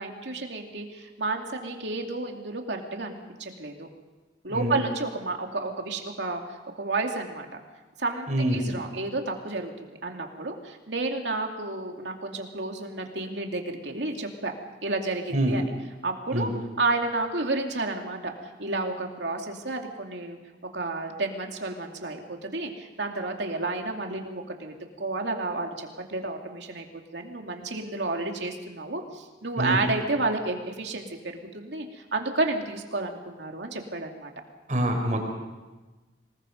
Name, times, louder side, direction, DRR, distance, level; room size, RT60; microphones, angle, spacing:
voice 1, 0.0-3.9 4.4-7.5 8.0-14.5 14.8-15.6 16.0-16.5 16.8-20.4 20.7-26.9 27.1-34.3, right 3 dB, 85° right, 2 dB, 2.7 m, -31 dB
voice 2, 8.3-8.8 15.3-15.6 16.3-16.5 29.6-29.8 34.7-35.3, right 1 dB, 45° right, 2 dB, 4.6 m, -25 dB
26.0 x 20.0 x 5.4 m, 1.2 s
head